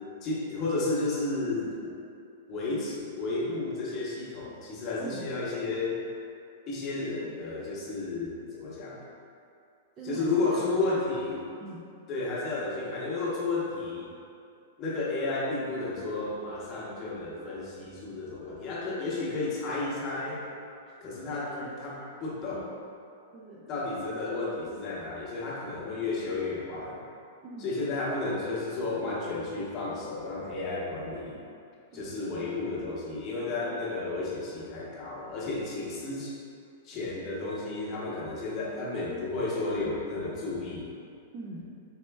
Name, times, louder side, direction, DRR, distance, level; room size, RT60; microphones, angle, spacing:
voice 1, 0.2-2.0 2.5-6.0 6.7-9.0 10.0-11.4 12.1-14.1 14.8-20.4 21.0-22.7 23.7-27.0 27.6-31.4 31.9-36.4 36.8-40.9, left 3 dB, 35° left, -5 dB, 0.9 m, -32 dB
voice 2, 5.0-5.4 10.0-11.8 21.5-21.7 22.5-22.7 23.3-23.9 27.4-27.7 31.9-32.2 41.3-41.7, right 2 dB, 35° right, -6 dB, 0.5 m, -43 dB
4.3 x 3.0 x 2.2 m, 2.4 s
figure-of-eight pair, 105°, 0 cm